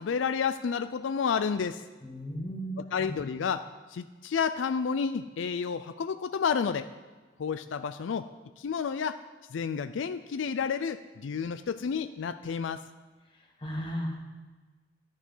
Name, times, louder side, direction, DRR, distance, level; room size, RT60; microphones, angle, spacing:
voice 1, 0.0-1.8 2.8-6.9 7.4-8.3 8.6-9.2 9.5-12.8, left 6 dB, 80° left, 11 dB, 0.4 m, -30 dB
voice 2, 2.0-3.1 13.6-14.2, equal, 25° left, -1 dB, 2.0 m, -35 dB
12.5 x 9.7 x 5.5 m, 1.3 s
head